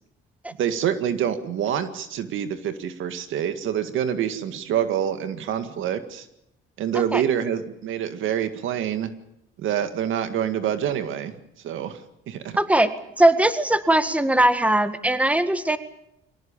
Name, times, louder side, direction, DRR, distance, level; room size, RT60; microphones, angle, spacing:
voice 1, 0.6-6.3 6.8-9.1 9.6-11.3 11.6-12.0 12.3-12.6, right 9 dB, 80° right, 9 dB, 2.0 m, -26 dB
voice 2, 12.6-12.9 13.2-15.8, right 1 dB, 5° right, 10 dB, 1.8 m, -19 dB
23.5 x 18.5 x 8.9 m, 0.81 s
cardioid pair, 90°, 20 cm